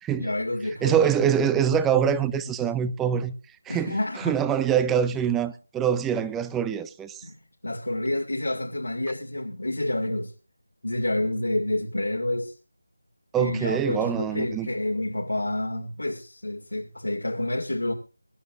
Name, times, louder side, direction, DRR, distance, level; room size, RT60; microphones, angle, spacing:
voice 1, 0.1-1.0 3.7-4.4 7.2-10.3 10.8-12.5 13.4-17.9, left 1 dB, 75° left, 2.3 m, -29 dB
voice 2, 0.8-3.3 3.7-7.2 13.3-14.7, right 8 dB, 5° right, 0.5 m, -24 dB
23.5 x 12.0 x 2.5 m
figure-of-eight pair, 165°, 0 cm